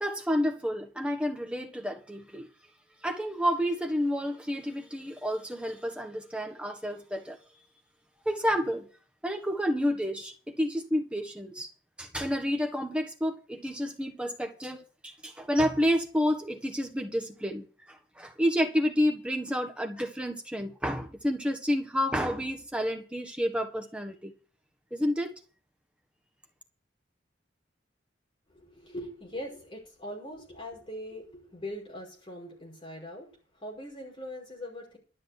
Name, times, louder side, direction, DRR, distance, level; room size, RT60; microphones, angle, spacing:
voice 1, 0.0-2.5 3.0-7.4 8.2-8.9 9.2-11.7 12.0-24.3 24.9-25.3, equal, 5° right, 1.5 m, -30 dB
voice 2, 28.5-33.3 33.5-35.0, left 1 dB, 30° left, 5.5 m, -41 dB
12.5 x 6.6 x 8.2 m
head